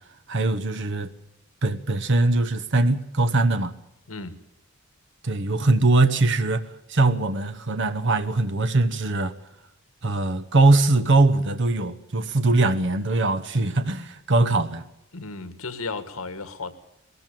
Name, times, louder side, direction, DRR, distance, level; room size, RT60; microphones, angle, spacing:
voice 1, 0.3-1.1 1.6-3.7 5.2-9.3 10.0-14.8, right 2 dB, 60° right, 1.0 m, -21 dB
voice 2, 15.1-16.7, left 3 dB, 75° left, 1.8 m, -34 dB
20.5 x 13.5 x 9.1 m
head